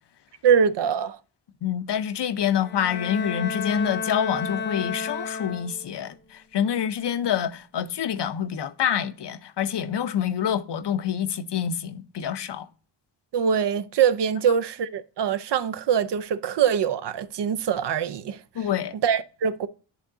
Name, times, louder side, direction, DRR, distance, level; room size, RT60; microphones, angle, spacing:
voice 1, 0.4-1.2 13.3-18.4 19.0-19.7, right 7 dB, 65° right, 0.5 m, -23 dB
voice 2, 1.6-12.7 18.5-18.9, left 9 dB, 65° left, 0.7 m, -27 dB
Bowed string instrument, 2.6-6.0, left 5 dB, 25° left, 0.5 m, -32 dB
10.0 x 3.7 x 3.6 m
wide cardioid pair, 100°, 44 cm